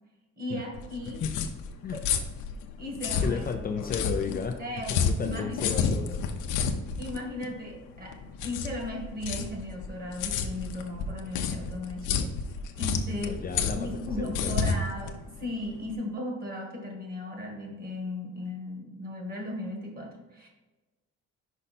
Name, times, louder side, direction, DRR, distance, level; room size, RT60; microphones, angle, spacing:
voice 1, 0.4-1.2 2.8-3.4 4.6-5.9 7.0-8.2 8.4-13.4 13.7-20.5, left 1 dB, 30° right, 0 dB, 1.8 m, -36 dB
sound 1, 0.7-15.9, left 6 dB, 85° left, 0.7 m, -31 dB
voice 2, 3.2-4.6 4.9-6.1 13.1-14.8, left 6 dB, 30° left, 4 dB, 0.4 m, -33 dB
5.5 x 5.0 x 4.2 m, 1.2 s
cardioid pair, 150°, 30 cm